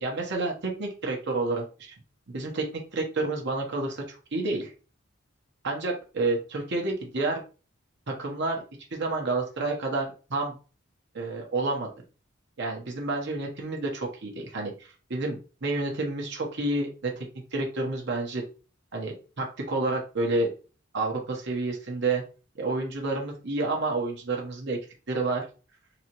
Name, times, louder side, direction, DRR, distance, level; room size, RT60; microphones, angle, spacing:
voice 1, 0.0-1.9 2.3-2.7 2.9-4.7 5.6-7.4 8.1-8.6 8.9-10.6 11.1-11.9 12.6-18.4 18.9-20.5 20.9-22.2 22.5-24.8 25.1-25.5, right 2 dB, 60° right, 0 dB, 1.0 m, -29 dB
3.9 x 2.9 x 3.0 m, 0.35 s
head